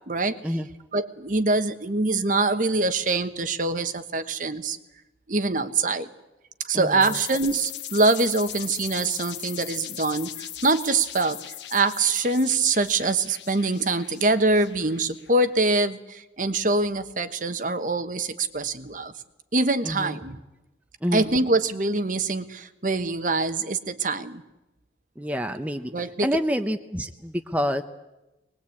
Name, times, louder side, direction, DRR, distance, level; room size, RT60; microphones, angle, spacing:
voice 1, 0.9-4.8 5.3-6.1 6.6-11.4 11.7-19.1 19.5-20.4 21.1-24.4 25.9-26.3, right 3 dB, 45° right, 10 dB, 1.2 m, -24 dB
voice 2, 6.7-7.2 19.8-20.2 21.0-21.3 25.2-27.8, equal, 10° right, 7 dB, 0.8 m, -28 dB
sound 1, 7.0-15.5, left 12 dB, 85° left, 1.0 m, -39 dB
23.0 x 20.0 x 8.6 m, 0.99 s
head